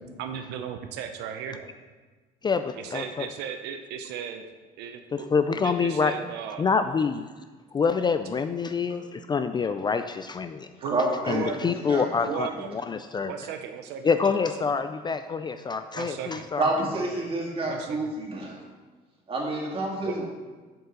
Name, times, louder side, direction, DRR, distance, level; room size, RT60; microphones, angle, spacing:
voice 1, 0.0-1.7 2.8-4.4 4.8-6.7 10.8-11.8 12.2-12.7 13.2-14.1 14.4-14.7 15.9-16.5 16.9-17.3 17.6-18.0 20.0-20.3, right 8 dB, 90° right, 6 dB, 0.6 m, -36 dB
voice 2, 2.4-3.3 5.1-6.1 6.6-7.3 7.7-10.7 11.3-13.3 14.0-16.7, left 5 dB, 25° left, 9 dB, 0.3 m, -26 dB
voice 3, 10.8-12.3 16.6-18.6 19.3-20.3, right 2 dB, 35° right, -1 dB, 2.2 m, -29 dB
7.5 x 5.4 x 5.3 m, 1.3 s
cardioid pair, 110°, 17 cm